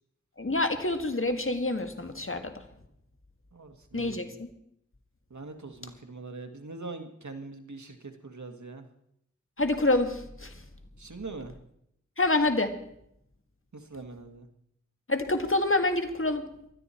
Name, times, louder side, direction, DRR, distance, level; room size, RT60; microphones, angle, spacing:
voice 1, 0.4-2.5 3.9-4.5 9.6-10.5 12.2-12.8 15.1-16.5, left 2 dB, 45° left, 7 dB, 1.8 m, -27 dB
voice 2, 3.5-4.2 5.3-8.8 11.0-11.5 13.7-14.5, right 3 dB, 70° right, 6 dB, 1.8 m, -42 dB
20.0 x 13.0 x 4.5 m, 0.74 s
wide cardioid pair, 45°, 30 cm